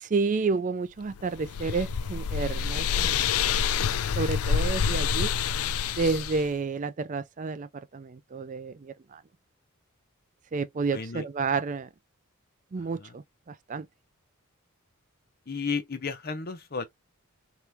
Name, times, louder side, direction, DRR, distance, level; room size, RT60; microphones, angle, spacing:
voice 1, 0.0-3.3 4.2-5.3 6.0-9.2 10.5-11.9 12.7-13.9, right 4 dB, 35° right, 0.4 m, -30 dB
sound 1, 1.1-6.5, left 7 dB, 85° left, 0.4 m, -27 dB
voice 2, 10.9-11.2 12.8-13.2 15.5-16.8, left 5 dB, 45° left, 0.7 m, -33 dB
3.2 x 2.9 x 3.4 m
head